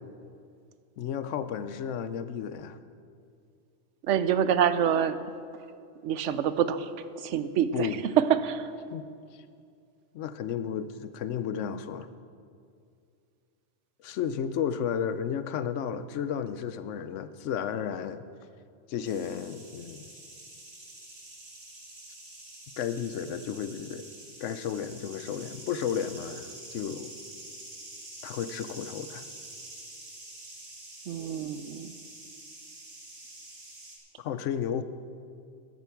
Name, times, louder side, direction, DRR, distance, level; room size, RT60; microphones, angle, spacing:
voice 1, 1.0-2.8 7.7-8.0 8.9-9.1 9.3-9.4 10.1-12.1 14.0-18.3 18.9-20.1 22.8-24.0 24.4-27.1 28.2-29.3 34.2-34.8, left 8 dB, 90° left, 12 dB, 1.0 m, -33 dB
voice 2, 4.1-5.2 6.0-6.9 7.2-7.9 8.2-8.7 31.1-31.9, right 9 dB, 85° right, 12 dB, 1.0 m, -26 dB
sound 1, 19.0-34.0, right 2 dB, 60° right, 2.1 m, -47 dB
13.5 x 10.5 x 4.6 m, 2.4 s
omnidirectional pair, 1.2 m